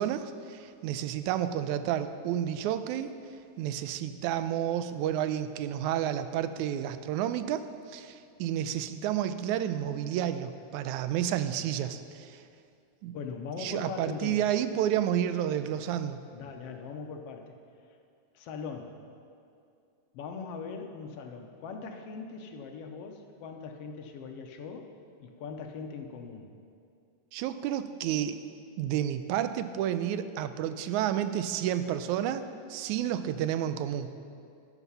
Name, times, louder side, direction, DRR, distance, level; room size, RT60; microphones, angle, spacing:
voice 1, 0.0-3.1 3.6-12.4 13.0-13.2 13.6-16.2 27.3-28.4 28.8-32.4 32.7-34.1, right 10 dB, 90° right, 11 dB, 2.0 m, -30 dB
voice 2, 13.1-14.5 16.3-17.6 18.3-19.0 20.1-24.9 25.2-26.5, left 5 dB, 70° left, 4 dB, 1.6 m, -40 dB
13.0 x 8.1 x 5.6 m, 2.5 s
omnidirectional pair, 3.3 m